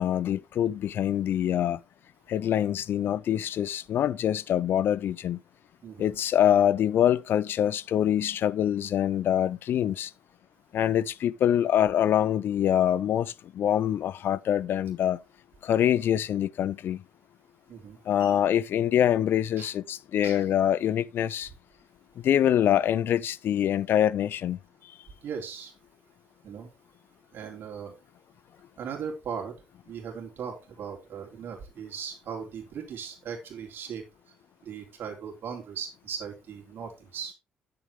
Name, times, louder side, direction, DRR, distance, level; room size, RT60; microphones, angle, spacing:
voice 1, 0.0-1.8 2.3-5.4 6.0-10.1 10.7-15.2 15.6-17.0 18.1-21.5 22.2-24.6, left 10 dB, 55° left, 0.5 m, -25 dB
voice 2, 5.8-6.2 17.7-18.4 19.6-19.7 20.2-20.5 25.2-25.7 26.4-26.7 27.3-27.9 28.8-29.6 29.9-34.0 34.6-37.3, right 7 dB, 55° right, 3.6 m, -38 dB
10.0 x 7.8 x 3.6 m
figure-of-eight pair, 45°, 4 cm